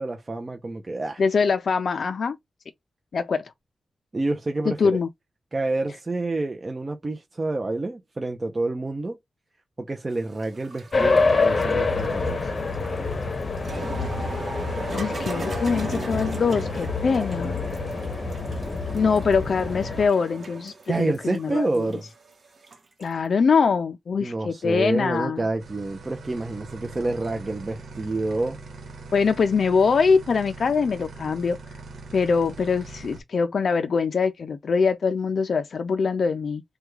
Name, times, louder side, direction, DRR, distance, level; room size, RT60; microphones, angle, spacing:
voice 1, 0.0-1.2 4.1-5.0 5.5-9.2 9.8-12.5 20.9-22.1 24.2-28.6, right 2 dB, 30° right, 0.6 m, -28 dB
voice 2, 1.2-2.4 3.1-3.5 4.7-5.1 14.9-17.6 18.9-21.9 23.0-25.4 29.1-31.6 32.1-36.6, left 5 dB, 60° left, 0.4 m, -23 dB
sound 1, 10.1-23.2, right 3 dB, 50° right, 1.1 m, -39 dB
sound 2, 10.9-20.1, left 3 dB, 40° left, 0.7 m, -26 dB
sound 3, 25.6-33.2, right 3 dB, 85° right, 1.1 m, -42 dB
3.5 x 2.2 x 3.1 m
wide cardioid pair, 115°, 0 cm